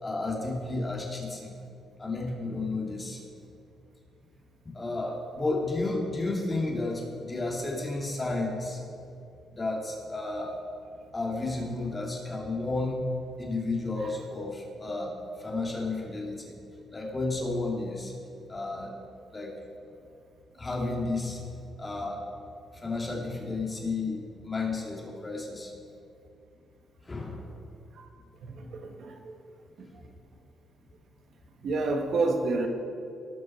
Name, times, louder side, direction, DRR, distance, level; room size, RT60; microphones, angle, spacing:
voice 1, 0.0-1.5 2.0-3.2 4.7-8.8 9.5-10.6 11.1-13.0 13.4-16.6 16.9-18.1 18.5-18.9 19.3-19.5 19.9-20.0 20.5-21.4 21.8-22.2 22.7-25.7 27.0-27.5, left 2 dB, 25° left, -2 dB, 2.5 m, -32 dB
voice 2, 28.4-29.3 29.8-29.9 31.6-32.7, right 3 dB, 65° right, 4 dB, 1.4 m, -29 dB
18.5 x 6.2 x 4.5 m, 2.5 s
cardioid pair, 90°, 0 cm